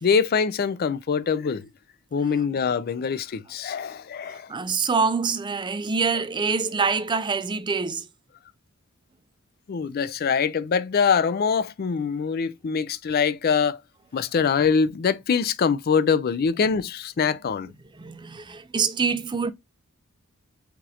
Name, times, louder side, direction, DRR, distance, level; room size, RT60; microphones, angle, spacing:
voice 1, 0.0-1.7 2.1-4.5 9.7-13.8 14.1-17.7, left 6 dB, 45° left, 0.4 m, -24 dB
voice 2, 4.3-8.1 18.0-19.5, right 5 dB, 20° right, 0.4 m, -25 dB
5.9 x 2.5 x 2.8 m
head